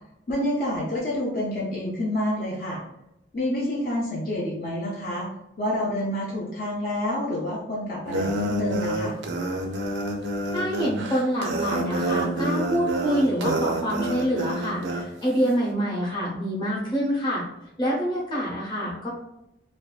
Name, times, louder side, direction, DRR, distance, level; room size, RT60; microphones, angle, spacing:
voice 1, 0.3-2.8 3.3-5.3 5.6-9.2, left 1 dB, 50° left, -6 dB, 0.5 m, -28 dB
sound 1, 8.0-15.1, right 1 dB, 85° right, 0.4 m, -28 dB
voice 2, 10.5-17.4 17.8-19.1, equal, 25° left, -5 dB, 0.8 m, -26 dB
2.6 x 2.2 x 2.3 m, 0.84 s
head